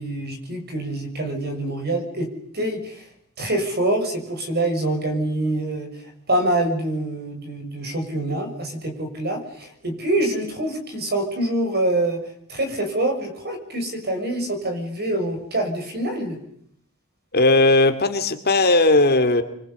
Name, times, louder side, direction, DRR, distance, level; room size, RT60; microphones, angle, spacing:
voice 1, 0.0-2.3 2.5-3.1 3.4-16.4, right 1 dB, 50° right, 6 dB, 6.7 m, -25 dB
voice 2, 17.3-19.4, left 2 dB, 45° left, 8 dB, 2.4 m, -17 dB
26.5 x 24.5 x 8.3 m, 0.70 s
head